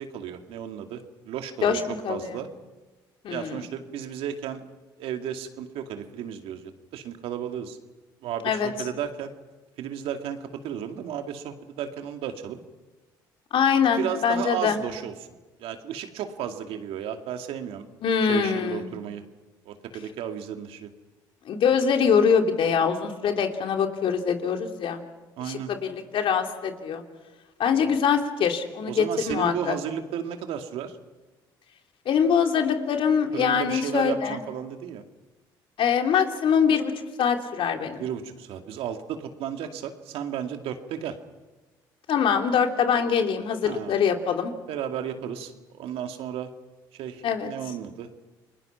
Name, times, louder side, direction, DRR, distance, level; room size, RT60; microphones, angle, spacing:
voice 1, 0.0-2.5 3.3-4.6 5.0-7.8 8.2-9.3 9.8-12.6 14.0-15.1 15.6-17.9 18.3-19.2 19.7-20.9 25.4-25.7 27.8-28.0 28.9-30.9 33.3-35.0 38.0-41.2 43.6-43.9 44.7-45.5 45.8-46.5 46.9-48.1, right 9 dB, 75° right, 6 dB, 2.4 m, -33 dB
voice 2, 1.6-2.4 3.2-3.6 8.4-8.7 13.5-14.8 18.0-18.9 21.5-25.0 25.5-27.0 27.6-29.8 32.0-34.4 35.8-36.9 37.2-38.0 42.1-44.5 47.2-47.5, left 7 dB, 60° left, 4 dB, 3.0 m, -23 dB
29.5 x 21.0 x 5.8 m, 1.2 s
supercardioid pair, 70°, 10 cm